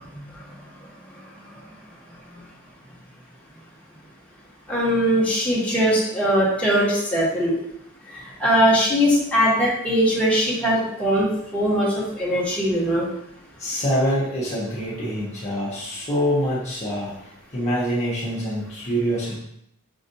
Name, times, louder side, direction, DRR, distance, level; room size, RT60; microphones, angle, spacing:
voice 1, 4.7-7.6 8.1-13.1, equal, 5° left, -7 dB, 1.0 m, -21 dB
voice 2, 13.6-17.1 17.5-19.4, equal, 30° left, -7 dB, 0.8 m, -25 dB
5.3 x 2.4 x 2.6 m, 0.75 s
head